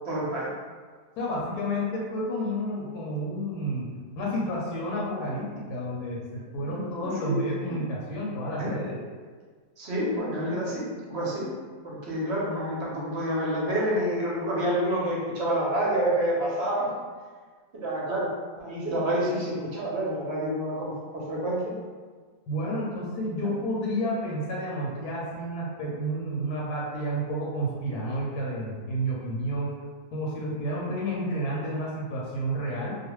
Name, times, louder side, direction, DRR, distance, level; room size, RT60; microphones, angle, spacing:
voice 1, 0.1-0.5 6.7-7.4 7.7-7.8 8.6-8.7 9.8-11.5 11.8-16.9 17.7-18.3 18.6-21.7, right 1 dB, 60° right, -5 dB, 0.7 m, -28 dB
voice 2, 1.2-3.9 4.1-9.0 22.5-29.7 30.1-33.0, equal, 85° left, -5 dB, 1.1 m, -30 dB
2.4 x 2.3 x 3.0 m, 1.5 s
omnidirectional pair, 1.6 m